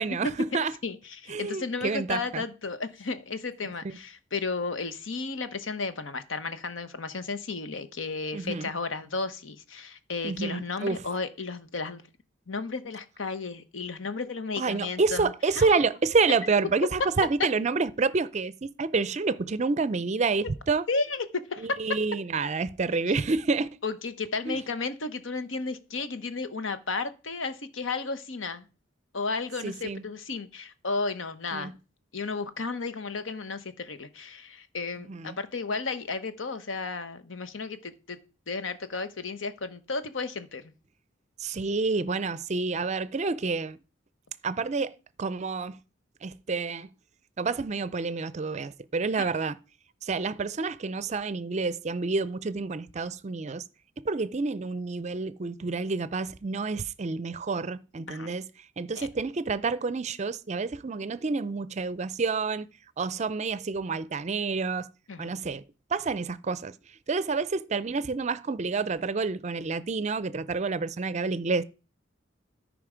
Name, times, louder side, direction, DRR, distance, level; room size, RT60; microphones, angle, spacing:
voice 1, 0.0-0.7 1.3-2.4 8.3-8.7 10.2-11.0 14.6-20.9 21.6-23.7 24.5-24.6 29.6-30.0 31.5-31.7 35.1-35.4 41.4-43.8 44.4-45.8 46.2-46.9 47.4-49.6 50.0-53.6 54.0-58.5 58.8-62.7 63.0-64.9 65.2-65.6 65.9-66.7 67.1-71.6, right 4 dB, 35° right, 0.4 m, -28 dB
voice 2, 0.8-12.0 12.5-15.8 20.9-21.7 23.8-28.7 29.1-31.7 32.1-38.2 38.5-40.6 58.1-58.3 59.0-59.1 65.1-65.3, left 4 dB, 85° left, 1.0 m, -33 dB
13.0 x 5.1 x 5.0 m
head